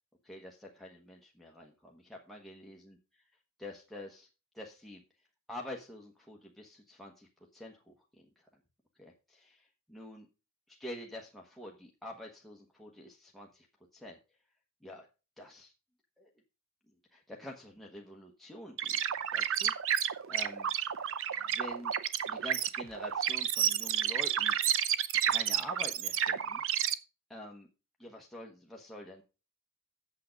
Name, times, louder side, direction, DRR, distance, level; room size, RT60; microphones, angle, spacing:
voice 1, 0.2-3.0 3.6-4.3 4.5-5.0 5.5-8.5 9.0-10.3 10.7-13.7 13.9-14.2 14.8-15.1 15.4-15.7 16.2-16.3 17.1-19.0 19.3-20.7 21.4-21.9 22.3-24.8 25.2-26.6 27.3-27.7 28.0-29.2, left 1 dB, ahead, -1 dB, 1.2 m, -47 dB
sound 1, 18.8-26.9, right 9 dB, 60° right, 0.7 m, -31 dB
8.6 x 7.5 x 5.1 m, 0.31 s
head